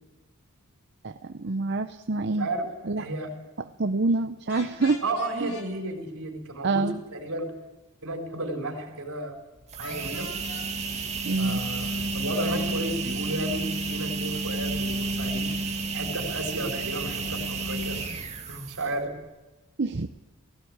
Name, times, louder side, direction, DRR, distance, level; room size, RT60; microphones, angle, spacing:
voice 1, 1.0-2.5 2.9-3.0 3.6-5.0 5.4-5.5 6.6-7.0 11.3-11.6 19.8-20.1, right 3 dB, 50° right, 7 dB, 0.7 m, -26 dB
voice 2, 3.0-3.3 5.0-7.5 8.0-9.4 9.8-10.3 11.4-15.5 15.9-18.0 18.5-19.1, right 1 dB, 70° right, 2 dB, 4.1 m, -33 dB
sound 1, 4.5-5.7 9.8-10.7 12.3-12.7, left 2 dB, 70° left, 4.5 m, -41 dB
sound 2, 9.6-19.0, right 3 dB, 30° right, 2.1 m, -31 dB
19.0 x 16.0 x 8.7 m, 1.1 s
head